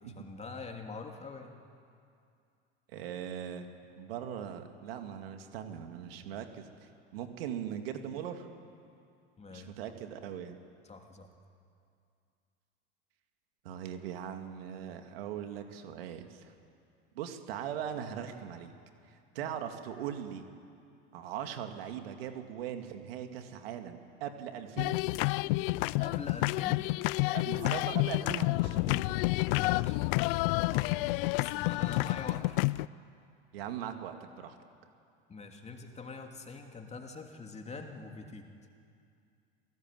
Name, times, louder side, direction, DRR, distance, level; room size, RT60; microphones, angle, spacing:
voice 1, 0.0-1.6 9.4-9.8 10.8-11.3 19.4-19.5 26.0-26.8 29.5-31.0 31.3-32.6 35.3-38.5, left 4 dB, 20° left, 3 dB, 3.0 m, -45 dB
voice 2, 2.9-3.7 4.0-6.7 7.1-8.5 9.5-10.6 13.6-16.5 17.1-18.7 19.1-20.4 21.1-25.0 27.3-29.2 33.5-34.6, right 9 dB, 80° right, 6 dB, 2.3 m, -40 dB
sound 1, 24.8-32.9, left 21 dB, 65° left, 0.5 m, -29 dB
26.5 x 18.0 x 9.3 m, 2.4 s
hypercardioid pair, 90°, 29 cm